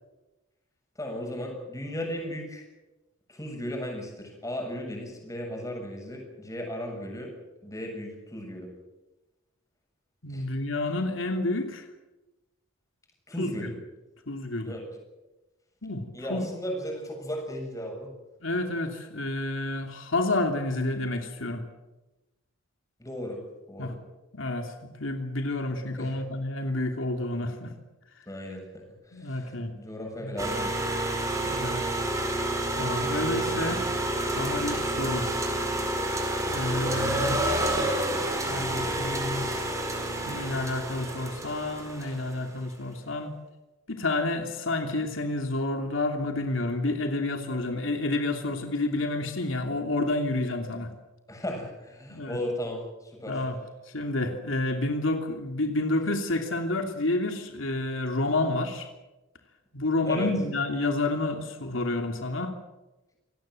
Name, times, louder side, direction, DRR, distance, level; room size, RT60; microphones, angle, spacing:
voice 1, 1.0-2.6 3.3-7.3 7.6-8.7 10.3-10.4 13.3-13.7 14.6-14.9 16.1-18.1 23.0-23.4 23.7-24.0 26.0-26.2 28.3-30.9 42.0-42.1 51.3-53.5 60.1-60.3, equal, 15° left, 1 dB, 7.3 m, -36 dB
voice 2, 10.2-11.9 13.4-13.7 14.3-14.8 15.8-16.5 18.4-21.6 23.8-23.9 24.3-27.7 29.1-29.7 30.2-30.3 31.4-31.8 32.8-33.8 34.3-35.3 36.5-37.4 38.4-39.5 40.2-43.3 43.9-50.9 52.1-52.4 53.3-53.6 53.9-58.9 59.7-62.6, left 2 dB, 85° left, 4 dB, 2.9 m, -29 dB
sound 1, 30.4-42.4, right 1 dB, 15° right, 4.5 m, -29 dB
27.0 x 18.5 x 7.8 m, 1.1 s
head